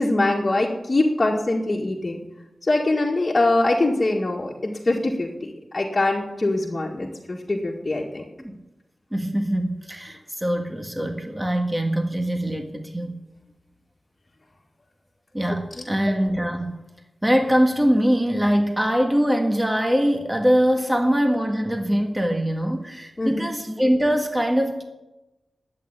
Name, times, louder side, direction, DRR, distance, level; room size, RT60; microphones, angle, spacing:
voice 1, 0.0-2.2 2.7-8.2 15.5-15.9 23.2-23.4, left 2 dB, 35° left, -4 dB, 2.0 m, -23 dB
voice 2, 9.1-13.1 15.3-16.8 17.2-24.8, equal, 10° right, 4 dB, 1.6 m, -22 dB
11.5 x 8.8 x 9.9 m, 1.0 s
wide cardioid pair, 90°, 0 cm